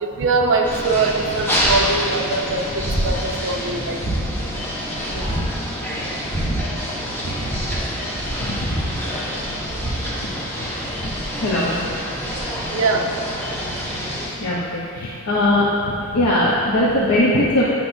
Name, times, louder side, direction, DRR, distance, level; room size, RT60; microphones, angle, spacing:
voice 1, 0.0-2.7 3.0-4.0 7.2-7.3 12.7-13.1, right 3 dB, 60° right, 2 dB, 0.6 m, -21 dB
sound 1, 0.6-14.3, equal, 10° left, 0.9 m, -26 dB
voice 2, 5.1-5.4 11.4-11.7 14.4-15.7 16.1-17.6, left 1 dB, 85° left, -6 dB, 0.8 m, -19 dB
8.3 x 6.0 x 2.6 m, 2.6 s
head